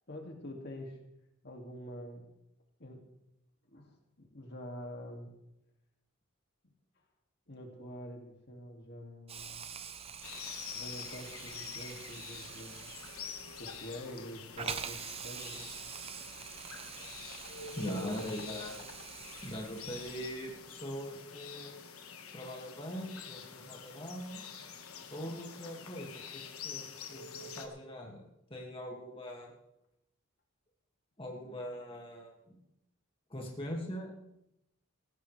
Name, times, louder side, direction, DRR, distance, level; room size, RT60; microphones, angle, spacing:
voice 1, 0.1-1.0 1.4-2.3 2.8-3.0 3.7-5.3 7.5-9.8 10.7-12.8 13.6-15.7 17.9-18.6, equal, 50° left, 2 dB, 2.3 m, -46 dB
Hiss, 9.3-20.5, right 6 dB, 25° right, 0.8 m, -45 dB
sound 1, 10.2-27.7, left 6 dB, 90° left, 1.6 m, -47 dB
voice 2, 17.8-18.8 19.4-21.8 22.3-24.4 25.1-29.5 31.2-32.6 33.3-34.1, equal, 25° left, -1 dB, 2.1 m, -42 dB
19.0 x 15.5 x 3.3 m, 0.84 s
head